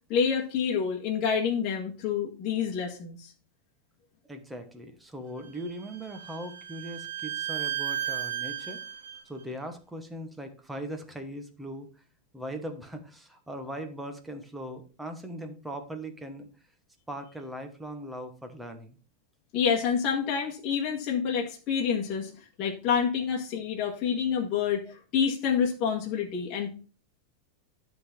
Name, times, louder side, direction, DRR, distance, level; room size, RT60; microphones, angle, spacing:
voice 1, 0.1-3.3 19.5-26.7, left 7 dB, 35° left, -1 dB, 1.7 m, -28 dB
voice 2, 4.3-8.8 9.2-11.9 12.3-16.5 17.1-19.0, right 1 dB, 5° right, 6 dB, 1.2 m, -39 dB
Bowed string instrument, 5.4-9.2, right 11 dB, 75° right, 1.7 m, -34 dB
11.0 x 4.0 x 5.9 m, 0.36 s
supercardioid pair, 165°, 0 cm